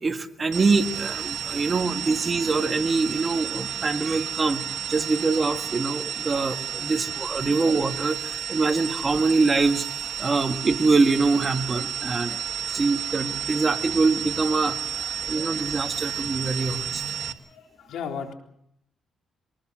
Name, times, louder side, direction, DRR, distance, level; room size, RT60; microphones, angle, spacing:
voice 1, 0.0-9.9 10.2-12.4 12.7-17.0, right 3 dB, 30° right, 7 dB, 1.8 m, -24 dB
sound 1, 0.5-17.3, right 8 dB, 70° right, 1.6 m, -32 dB
voice 2, 17.2-18.3, left 6 dB, 80° left, 3 dB, 3.8 m, -37 dB
23.5 x 20.0 x 6.3 m, 0.73 s
cardioid pair, 90°, 0 cm